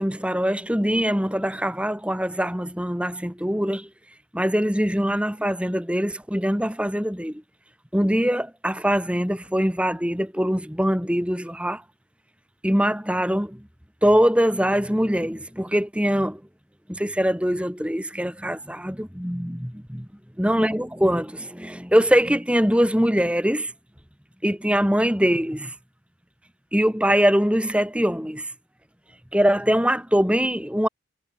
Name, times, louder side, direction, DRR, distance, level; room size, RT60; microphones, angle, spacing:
voice 1, 0.0-3.9 4.3-7.4 7.9-11.8 12.6-13.6 14.0-16.4 16.9-20.1 20.4-23.7 24.4-25.8 26.7-28.5 29.3-30.9, equal, 5° right, 3.6 m, -23 dB
head